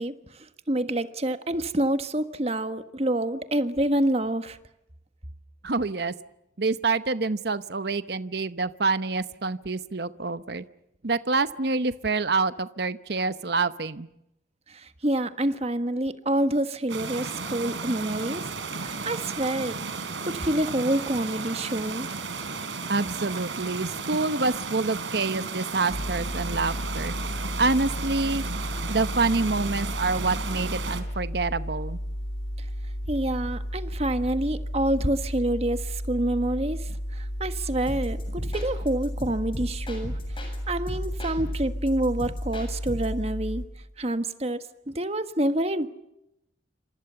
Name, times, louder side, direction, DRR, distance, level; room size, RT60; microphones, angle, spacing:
voice 1, 0.0-4.6 14.7-18.5 18.8-19.8 20.3-22.1 32.6-32.7 33.1-40.1 40.7-43.6 44.0-45.9, right 1 dB, 35° right, 10 dB, 1.5 m, -27 dB
voice 2, 5.6-6.1 6.6-10.6 11.0-14.1 22.9-27.1 27.6-28.4 28.9-32.0, right 3 dB, 55° right, 13 dB, 0.9 m, -27 dB
sound 1, 16.9-31.0, right 4 dB, 85° right, 3.6 m, -34 dB
sound 2, 25.9-43.7, equal, 90° left, 5.4 m, -33 dB
sound 3, 37.9-40.6 40.9-43.2, equal, 25° left, 7.3 m, -38 dB
28.5 x 26.0 x 7.0 m, 0.84 s
head